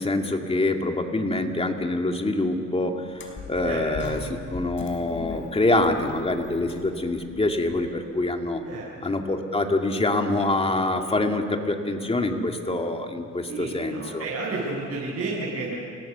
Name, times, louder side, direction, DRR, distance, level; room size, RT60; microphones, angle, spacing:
voice 1, 0.0-8.6 9.0-14.3, left 2 dB, 20° left, 3 dB, 2.5 m, -25 dB
sound 1, 3.1-8.4, left 3 dB, 40° left, 4.8 m, -40 dB
voice 2, 13.5-15.7, right 3 dB, 55° right, -5 dB, 7.0 m, -31 dB
28.0 x 18.5 x 7.0 m, 2.3 s
cardioid pair, 90°, 30 cm